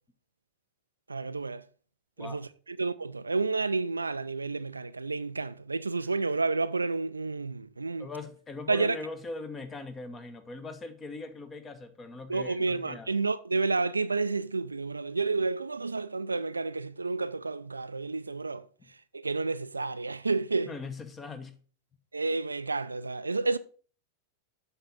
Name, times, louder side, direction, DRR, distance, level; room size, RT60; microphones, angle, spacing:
voice 1, 1.1-1.6 2.2-8.1 8.7-9.0 12.3-18.7 19.1-20.7 22.1-23.6, right 3 dB, 80° right, 0.4 m, -30 dB
voice 2, 8.0-13.2 20.6-21.6, left 3 dB, 20° left, 1.1 m, -41 dB
7.9 x 6.0 x 4.1 m
figure-of-eight pair, 90°, 0 cm